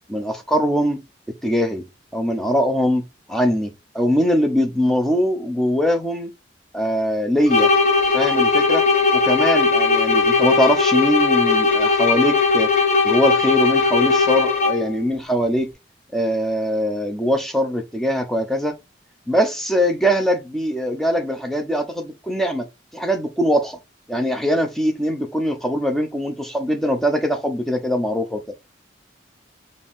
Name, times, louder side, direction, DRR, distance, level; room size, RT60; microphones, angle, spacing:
voice 1, 0.1-1.0 1.4-1.8 2.1-3.0 3.3-6.3 6.7-7.7 8.1-12.7 13.0-15.7 16.1-18.7 19.3-22.7 22.9-23.8 24.1-28.6, equal, ahead, 0.7 m, -22 dB
sound 1, 7.5-15.0, left 4 dB, 35° left, 1.1 m, -18 dB
4.5 x 2.6 x 3.6 m
head